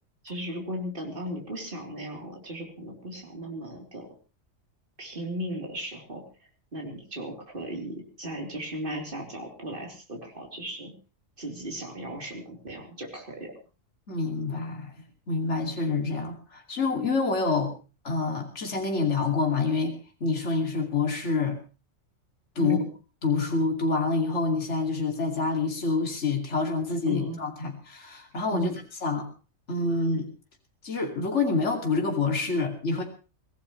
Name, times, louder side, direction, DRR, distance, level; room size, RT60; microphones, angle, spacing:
voice 1, 0.2-4.1 5.0-6.2 6.7-10.9 11.4-13.5 22.6-22.9 27.1-27.4 28.5-28.8, equal, 40° right, 0 dB, 3.9 m, -36 dB
voice 2, 14.1-17.7 18.0-21.6 22.6-22.8 23.2-28.7 29.0-29.3 29.7-30.3 30.8-33.0, left 4 dB, 60° left, 2 dB, 2.9 m, -27 dB
24.0 x 16.5 x 3.2 m, 0.33 s
omnidirectional pair, 1.4 m